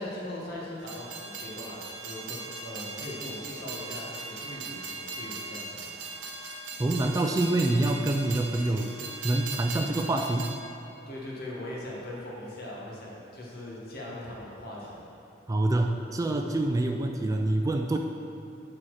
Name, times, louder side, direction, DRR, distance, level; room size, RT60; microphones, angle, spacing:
voice 1, 0.0-5.9 11.1-15.1, left 1 dB, 55° left, -4 dB, 1.7 m, -40 dB
Train, 0.8-10.6, right 3 dB, 80° right, 0.8 m, -39 dB
voice 2, 6.8-9.0 9.2-10.5 15.5-18.0, right 2 dB, 20° right, 3 dB, 0.3 m, -26 dB
11.0 x 4.3 x 4.9 m, 2.9 s
head